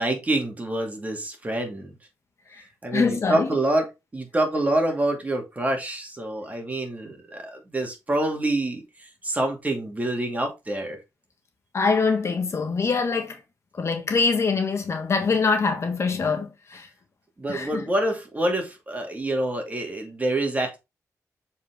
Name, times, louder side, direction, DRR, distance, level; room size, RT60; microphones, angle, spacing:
voice 1, 0.0-1.9 2.8-3.9 4.1-11.0 17.4-20.8, right 1 dB, 25° right, 2.4 m, -26 dB
voice 2, 2.9-3.5 11.7-13.4 13.7-16.9 17.5-17.9, left 4 dB, 50° left, 1.5 m, -24 dB
7.2 x 4.4 x 3.6 m
cardioid pair, 90°, 6 cm